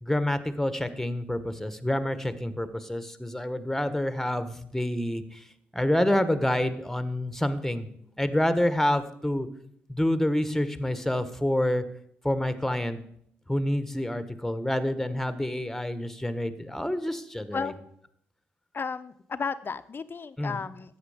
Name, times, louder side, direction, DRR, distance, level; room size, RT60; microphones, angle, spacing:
voice 1, 0.0-5.4 5.7-7.9 8.2-9.5 9.9-11.8 12.2-13.0 13.5-17.7 20.4-20.6, left 1 dB, 5° left, 12 dB, 1.4 m, -27 dB
voice 2, 18.7-21.0, left 5 dB, 40° left, 12 dB, 0.8 m, -33 dB
13.0 x 8.6 x 5.1 m, 0.70 s
hypercardioid pair, 45°, 5 cm